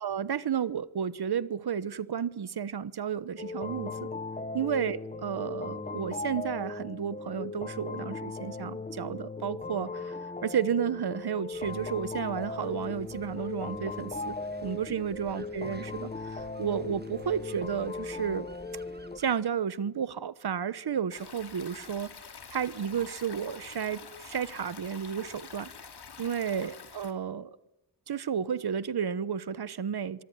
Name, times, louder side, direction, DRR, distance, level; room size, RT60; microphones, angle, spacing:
voice 1, 0.0-4.1 4.5-14.3 14.6-18.5 19.2-22.1 22.5-25.7 26.2-27.6 28.1-30.2, right 7 dB, 60° right, 1.1 m, -32 dB
sound 1, 3.4-19.2, left 3 dB, 20° left, 1.1 m, -38 dB
sound 2, 11.5-19.3, right 3 dB, 20° right, 1.6 m, -54 dB
Stream, 21.1-27.1, left 6 dB, 60° left, 2.9 m, -47 dB
25.5 x 23.5 x 9.7 m
wide cardioid pair, 135°, 44 cm